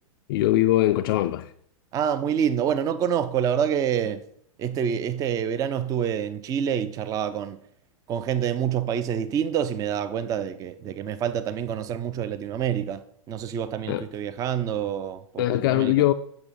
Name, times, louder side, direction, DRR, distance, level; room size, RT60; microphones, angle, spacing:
voice 1, 0.3-1.5 13.9-14.1 15.4-16.1, left 15 dB, 40° left, 0.4 m, -21 dB
voice 2, 1.9-4.2 4.6-7.6 8.1-15.9, right 8 dB, 20° right, 0.4 m, -27 dB
7.9 x 6.1 x 5.3 m
figure-of-eight pair, 105°, 18 cm